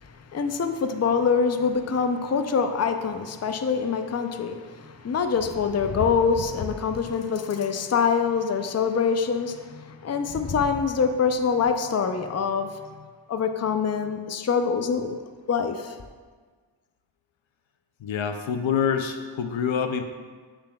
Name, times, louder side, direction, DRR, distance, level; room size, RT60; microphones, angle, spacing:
voice 1, 0.0-15.2 15.5-16.0, left 6 dB, 35° left, 7 dB, 0.5 m, -25 dB
voice 2, 18.0-20.0, left 7 dB, 80° left, 7 dB, 0.6 m, -26 dB
7.9 x 6.7 x 2.3 m, 1.5 s
cardioid pair, 40°, 46 cm